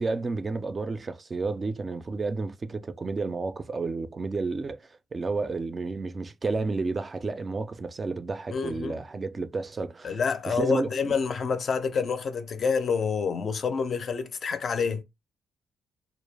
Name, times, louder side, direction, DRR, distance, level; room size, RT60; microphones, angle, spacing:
voice 1, 0.0-4.8 5.1-10.2 10.5-11.1, right 3 dB, 30° right, 0.3 m, -31 dB
voice 2, 8.5-9.0 10.0-15.0, left 5 dB, 50° left, 0.4 m, -28 dB
2.2 x 2.0 x 3.2 m
cardioid pair, 90°, 0 cm